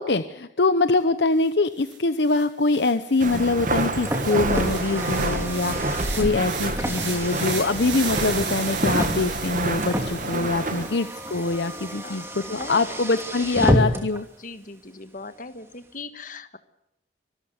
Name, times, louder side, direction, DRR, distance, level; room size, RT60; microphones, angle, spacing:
voice 1, 0.0-14.3, left 3 dB, 65° left, 11 dB, 0.8 m, -24 dB
sound 1, 1.5-1.6 1.8-12.2, right 6 dB, 90° right, 7.0 m, -37 dB
Walk footsteps, 3.2-10.9, right 2 dB, 45° right, 1.9 m, -28 dB
Car, 4.0-14.2, equal, 15° right, 2.8 m, -30 dB
voice 2, 5.3-6.0 12.0-13.0 14.4-16.6, left 2 dB, 45° left, 10 dB, 1.5 m, -39 dB
25.0 x 13.5 x 8.1 m, 0.87 s
head